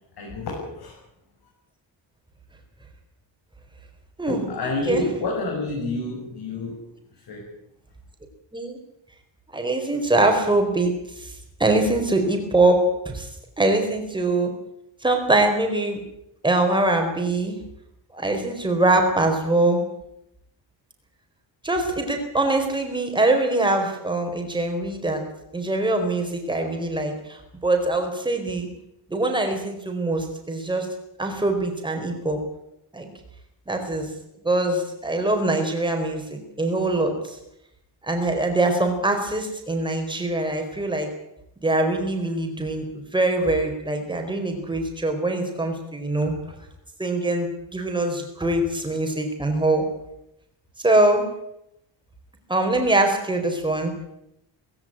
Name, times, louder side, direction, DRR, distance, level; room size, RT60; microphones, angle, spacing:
voice 1, 0.2-1.0 4.3-6.8 7.1-7.5, left 2 dB, 55° left, -1 dB, 6.6 m, -29 dB
voice 2, 9.5-11.3 11.6-12.8 13.1-13.3 13.6-14.5 15.0-16.0 16.4-17.6 18.1-19.8 21.6-25.2 25.5-28.7 29.1-30.9 31.2-32.4 32.9-33.1 33.7-34.1 34.4-37.4 38.0-41.1 41.6-42.8 43.1-46.3 47.0-49.9 50.8-51.3 52.5-53.9, right 2 dB, 10° right, 4 dB, 4.3 m, -23 dB
18.5 x 17.0 x 10.0 m, 0.80 s
wide cardioid pair, 175°, 46 cm